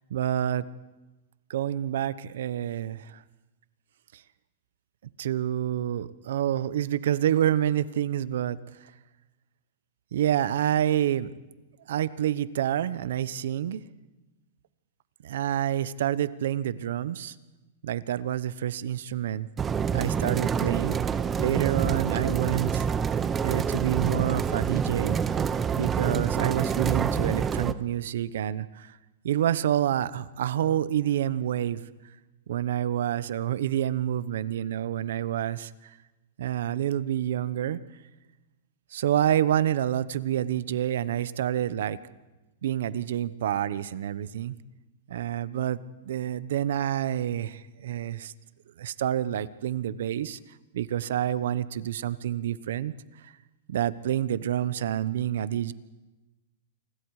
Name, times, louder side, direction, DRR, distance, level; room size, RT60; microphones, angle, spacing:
voice 1, 0.1-0.6 1.5-3.2 4.1-4.2 5.2-8.6 10.1-11.3 11.9-13.8 15.2-17.3 17.8-19.5 19.9-22.9 23.4-25.2 25.7-29.0 29.2-31.8 32.5-36.0 36.4-37.8 38.9-42.0 42.6-44.6 45.1-48.3 48.8-50.4 50.7-52.9 53.2-53.3 53.7-55.7, right 11 dB, 75° right, 16 dB, 0.9 m, -28 dB
sound 1, 19.6-27.7, right 7 dB, 15° right, 0.7 m, -27 dB
28.5 x 20.5 x 4.9 m, 1.1 s
supercardioid pair, 150°, 0 cm